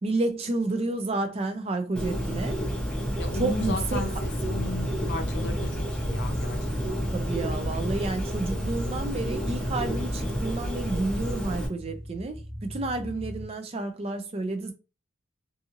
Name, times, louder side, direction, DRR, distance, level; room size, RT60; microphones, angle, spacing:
voice 1, 0.0-2.6 3.3-4.2 7.1-14.7, right 2 dB, 30° right, 0.4 m, -30 dB
Bird, 2.0-11.7, equal, 5° left, 0.7 m, -30 dB
sound 1, 3.1-13.5, equal, 15° right, 1.0 m, -37 dB
voice 2, 3.2-5.7 6.0-6.6 6.9-7.1, left 3 dB, 55° left, 0.6 m, -34 dB
2.6 x 2.6 x 2.5 m
head